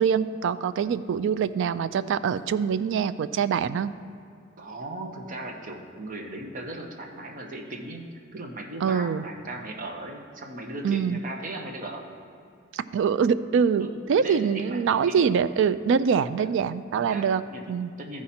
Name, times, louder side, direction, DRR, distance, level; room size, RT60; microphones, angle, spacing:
voice 1, 0.0-3.9 8.8-9.2 10.8-11.2 12.7-17.4 17.7-17.9, right 6 dB, 60° right, 14 dB, 0.3 m, -24 dB
voice 2, 4.6-8.1 8.3-12.1 13.8-15.2 16.4-16.5 17.0-18.2, right 2 dB, 40° right, 1 dB, 0.9 m, -38 dB
14.0 x 4.8 x 4.3 m, 2.4 s
head